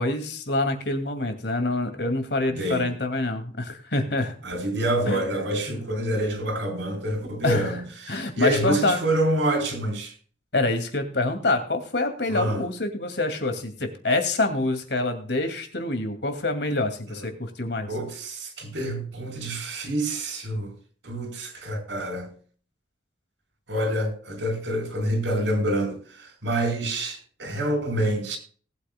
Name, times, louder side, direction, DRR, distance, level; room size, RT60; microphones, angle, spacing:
voice 1, 0.0-4.3 5.1-5.2 5.7-5.8 7.4-7.8 8.1-9.0 10.5-17.9, left 2 dB, 70° left, 2.4 m, -26 dB
voice 2, 2.5-2.9 4.4-10.1 12.3-12.6 17.1-17.2 17.9-20.7 21.0-22.3 23.7-28.4, right 1 dB, 85° right, 4.2 m, -27 dB
19.0 x 8.8 x 2.3 m
head